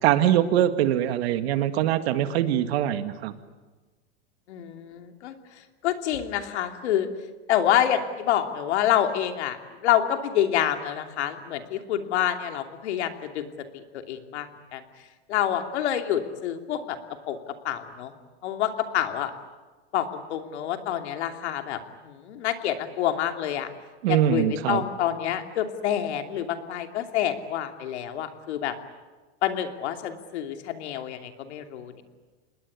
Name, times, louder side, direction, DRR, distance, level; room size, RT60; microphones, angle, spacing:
voice 1, 0.0-3.3 24.0-24.8, right 11 dB, 65° right, 10 dB, 2.1 m, -23 dB
voice 2, 4.5-5.3 5.8-7.1 7.5-14.8 15.3-17.0 17.3-17.4 17.6-18.1 18.4-19.3 19.9-23.7 24.1-28.7 29.4-32.0, left 10 dB, 75° left, 6 dB, 2.9 m, -27 dB
27.0 x 20.5 x 9.6 m, 1.3 s
supercardioid pair, 145°, 34 cm